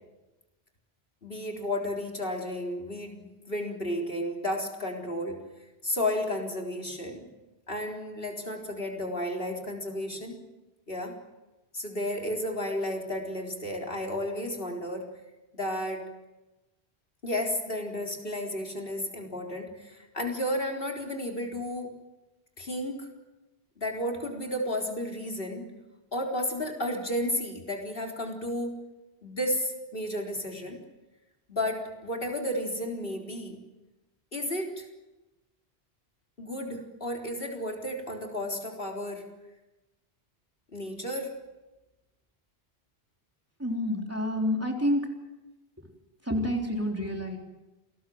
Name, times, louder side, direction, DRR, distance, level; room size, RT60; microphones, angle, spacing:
voice 1, 1.2-5.4 5.8-7.3 7.7-10.4 10.9-11.2 11.7-15.1 15.5-16.1 17.2-21.9 22.6-23.1 23.8-25.7 26.1-28.8 29.2-30.8 31.5-33.6 34.3-34.9 36.4-39.3 40.7-41.3, left 1 dB, 60° left, 1 dB, 4.2 m, -32 dB
voice 2, 43.6-45.2 46.2-47.4, equal, 15° right, 1 dB, 3.7 m, -28 dB
28.5 x 20.0 x 7.9 m, 1.0 s
omnidirectional pair, 1.1 m